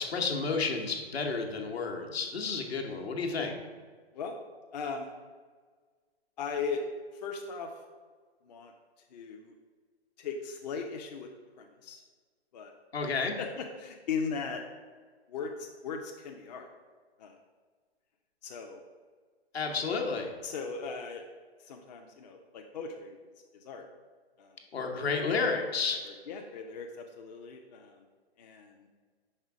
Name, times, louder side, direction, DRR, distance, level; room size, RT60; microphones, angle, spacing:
voice 1, 0.0-3.6 12.9-13.3 19.5-20.3 24.7-26.0, left 4 dB, 70° left, 2 dB, 1.1 m, -31 dB
voice 2, 4.7-5.1 6.4-6.8 7.1-7.7 8.4-8.7 9.1-9.5 10.2-11.3 11.6-12.0 12.5-12.7 13.0-14.6 15.3-16.7 17.2-17.4 18.4-18.8 20.4-21.3 21.6-23.2 23.5-23.8 24.4-24.6 26.0-28.1 28.4-28.9, left 5 dB, 40° left, 2 dB, 0.5 m, -38 dB
5.5 x 3.6 x 5.9 m, 1.5 s
figure-of-eight pair, 130°, 32 cm